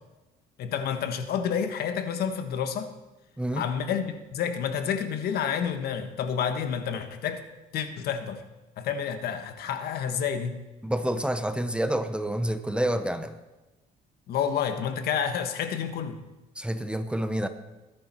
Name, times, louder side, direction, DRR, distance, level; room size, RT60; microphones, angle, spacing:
voice 1, 0.6-2.9 3.5-7.4 7.7-8.4 8.8-10.6 14.3-16.2, left 7 dB, 65° left, 8 dB, 1.4 m, -29 dB
voice 2, 10.8-13.4 16.6-17.5, right 1 dB, 5° right, 10 dB, 0.8 m, -28 dB
21.0 x 10.5 x 4.5 m, 1.1 s
cardioid pair, 110°, 17 cm